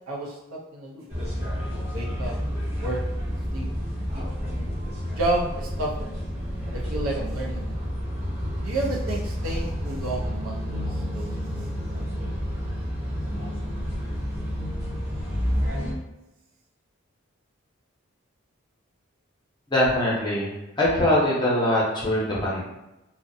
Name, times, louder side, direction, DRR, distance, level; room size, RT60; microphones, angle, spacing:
voice 1, 0.1-1.0 1.9-2.4 2.8-3.0 3.5-3.7 4.1-4.3 5.2-6.1 6.7-7.8 8.6-10.8 11.1-11.7, right 2 dB, 85° right, -2 dB, 0.6 m, -31 dB
sound 1, 1.1-15.9, equal, 30° right, 0.7 m, -30 dB
voice 2, 19.7-22.6, left 1 dB, 20° left, -5 dB, 0.6 m, -23 dB
2.5 x 2.1 x 2.6 m, 0.94 s
head